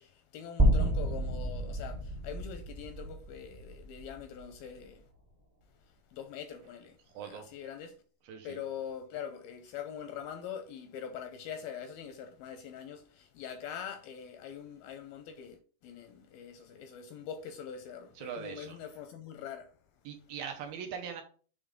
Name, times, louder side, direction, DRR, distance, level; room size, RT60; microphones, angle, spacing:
voice 1, 0.0-5.0 6.1-8.0 8.4-15.6 15.8-19.7, left 8 dB, 80° left, 2.2 m, -43 dB
sound 1, 0.6-4.8, right 1 dB, 20° right, 1.0 m, -30 dB
voice 2, 7.1-7.5 8.2-8.6 18.2-18.8 20.1-21.2, right 7 dB, 75° right, 2.4 m, -41 dB
7.2 x 3.7 x 5.1 m
omnidirectional pair, 4.8 m